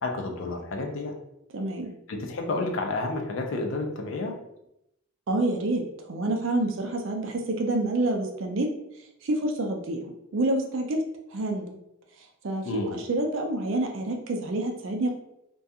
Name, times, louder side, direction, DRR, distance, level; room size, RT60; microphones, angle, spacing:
voice 1, 0.0-1.2 2.1-4.4 12.6-13.0, left 2 dB, 60° left, 3 dB, 0.4 m, -30 dB
voice 2, 1.5-1.9 5.3-8.7 9.2-10.0 10.3-11.0 11.3-11.7 12.4-15.1, right 2 dB, 60° right, 3 dB, 0.4 m, -27 dB
2.3 x 2.2 x 2.7 m, 0.81 s
head